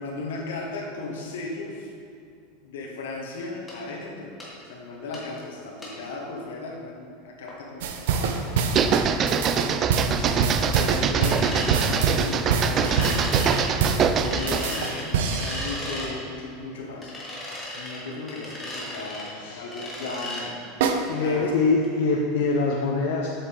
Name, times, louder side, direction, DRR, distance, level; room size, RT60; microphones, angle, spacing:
voice 1, 0.0-1.9 2.6-4.3 4.7-9.6 10.1-20.6 21.1-21.5, left 3 dB, 90° left, -1 dB, 1.4 m, -36 dB
sound 1, 3.7-3.8 4.4-4.5 5.1-5.2 5.8-5.9 7.5-7.6 8.1-8.2 8.8-8.9 9.4-9.5 10.2-10.3 11.2-12.0 12.8-13.7 14.2-16.1 17.0-18.0 18.3-19.3 19.7-20.4 20.9-21.0 21.4-21.5 21.8-21.9, left 1 dB, 15° left, 1.9 m, -35 dB
sound 2, 7.8-16.0 20.8-20.9, right 5 dB, 75° right, 0.6 m, -25 dB
sound 3, 8.6-14.7, right 7 dB, 35° right, 0.3 m, -24 dB
voice 2, 21.1-23.3, left 3 dB, 70° left, -1 dB, 0.7 m, -24 dB
7.3 x 7.2 x 3.5 m, 2.4 s
supercardioid pair, 130°, 0 cm